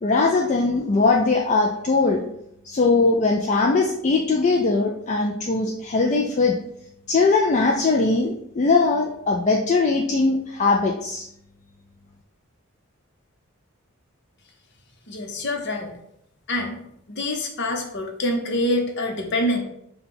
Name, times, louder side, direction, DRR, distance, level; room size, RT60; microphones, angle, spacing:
voice 1, 0.0-2.2 2.6-6.6 7.1-11.3, left 3 dB, 35° left, 0 dB, 0.4 m, -20 dB
voice 2, 15.1-16.0 16.5-16.8 17.1-19.6, left 1 dB, 55° left, 3 dB, 0.8 m, -26 dB
5.5 x 2.3 x 4.0 m, 0.75 s
head